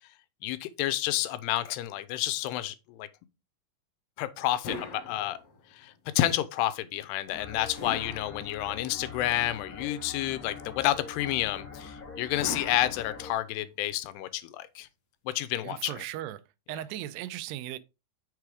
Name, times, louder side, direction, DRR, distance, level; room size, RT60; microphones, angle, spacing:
voice 1, 0.4-3.1 4.2-5.4 5.8-14.9 15.3-16.0, left 14 dB, 90° left, 2.7 m, -30 dB
sound 1, 4.6-5.8 7.8-9.0 12.4-13.7, left 3 dB, 55° left, 1.9 m, -41 dB
sound 2, 7.3-13.3, left 5 dB, 35° left, 1.8 m, -43 dB
voice 2, 15.6-16.4 16.7-17.8, right 13 dB, 85° right, 2.7 m, -37 dB
6.6 x 4.8 x 4.7 m
omnidirectional pair, 4.7 m